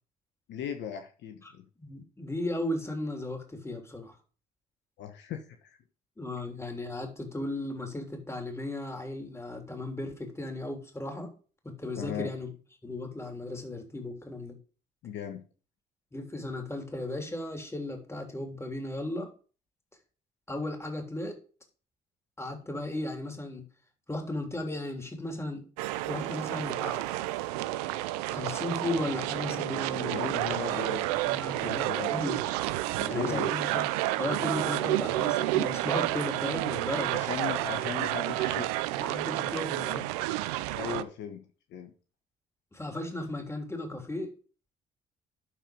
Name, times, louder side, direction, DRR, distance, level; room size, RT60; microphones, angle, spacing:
voice 1, 0.5-1.6 5.0-5.8 12.0-12.3 15.0-15.4 30.1-31.1 31.6-32.3 32.9-33.5 37.1-38.7 40.7-41.4 41.7-41.9, left 8 dB, 65° left, 6 dB, 1.2 m, -37 dB
voice 2, 1.8-4.2 6.2-11.3 11.6-12.5 12.8-14.6 16.1-19.3 20.5-21.4 22.4-23.6 24.1-25.6 26.0-27.1 28.3-30.8 31.2-32.6 33.1-33.8 34.2-37.1 38.9-40.1 42.7-44.3, left 1 dB, 15° left, 3 dB, 3.3 m, -35 dB
sound 1, 25.8-41.0, right 16 dB, 85° right, 0.5 m, -30 dB
12.0 x 4.6 x 5.2 m, 0.38 s
hypercardioid pair, 55°, 19 cm